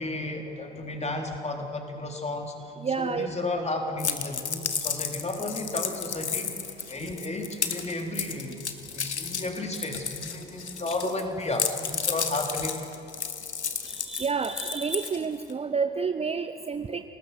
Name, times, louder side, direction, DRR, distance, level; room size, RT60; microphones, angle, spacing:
voice 1, 0.0-2.5 2.9-8.6 8.9-12.9, left 2 dB, 20° left, 2 dB, 3.6 m, -33 dB
voice 2, 2.8-3.3 13.9-17.0, right 5 dB, 20° right, 9 dB, 0.8 m, -29 dB
sound 1, 4.0-11.2 11.5-15.5, left 6 dB, 85° left, 1.2 m, -32 dB
29.5 x 19.0 x 6.9 m, 2.7 s
figure-of-eight pair, 60°, 33 cm